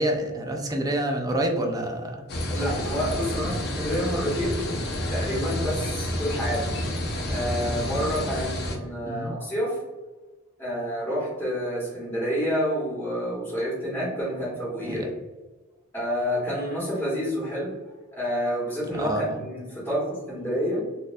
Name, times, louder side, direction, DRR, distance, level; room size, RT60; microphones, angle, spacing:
voice 1, 0.0-2.2 9.0-9.4 14.8-15.1 18.9-19.4, right 1 dB, 20° right, 2 dB, 0.5 m, -27 dB
sound 1, 2.3-8.8, left 1 dB, 50° left, 0.7 m, -29 dB
voice 2, 2.5-4.6 5.1-6.7 7.2-9.8 10.6-15.1 15.9-17.7 18.1-20.8, equal, 10° left, -9 dB, 1.3 m, -28 dB
4.1 x 2.6 x 2.5 m, 1.2 s
head